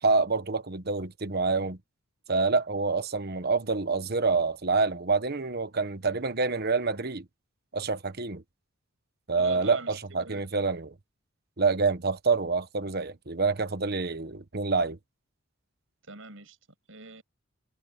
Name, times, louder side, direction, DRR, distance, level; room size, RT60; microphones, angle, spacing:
voice 1, 0.0-1.8 2.3-7.2 7.7-8.4 9.3-10.9 11.6-15.0, right 4 dB, 50° right, 1.2 m, -27 dB
voice 2, 9.4-10.4 16.0-16.6 16.9-17.2, right 3 dB, 70° right, 7.4 m, -41 dB
head